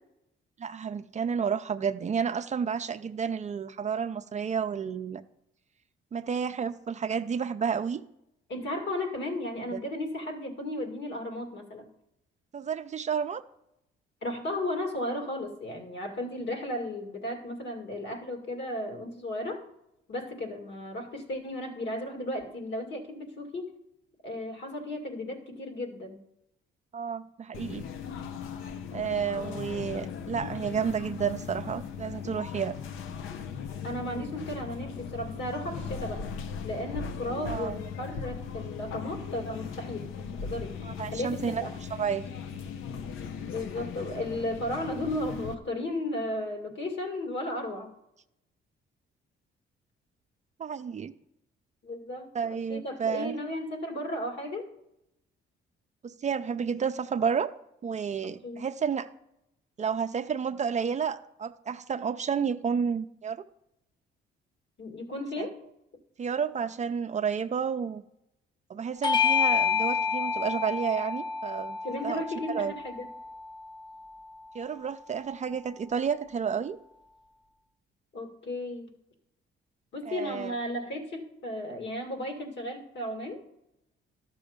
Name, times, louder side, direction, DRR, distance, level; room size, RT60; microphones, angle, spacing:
voice 1, 0.6-5.2 6.1-8.0 9.7-9.8 12.5-13.4 26.9-27.8 28.9-32.7 37.4-37.8 40.8-41.6 41.9-42.2 50.6-51.1 52.3-53.3 56.0-57.5 57.8-59.1 59.8-63.4 65.4-65.5 66.2-68.0 68.7-71.8 72.0-72.2 72.5-72.7 74.5-76.8 80.1-80.5, right 7 dB, 35° right, 10 dB, 0.5 m, -31 dB
voice 2, 8.5-11.9 14.2-19.6 20.1-23.7 24.2-26.2 33.8-36.2 36.6-40.7 41.1-41.7 43.5-47.9 51.8-54.7 58.4-58.6 64.8-65.6 71.8-73.1 78.1-78.9 79.9-83.4, left 1 dB, 60° left, 5 dB, 2.2 m, -34 dB
sound 1, 27.5-45.6, left 6 dB, 85° left, 0.7 m, -38 dB
Bell / Doorbell, 69.0-73.9, left 6 dB, 20° left, 0.5 m, -29 dB
12.0 x 6.2 x 5.1 m, 0.82 s
cardioid pair, 90°, 20 cm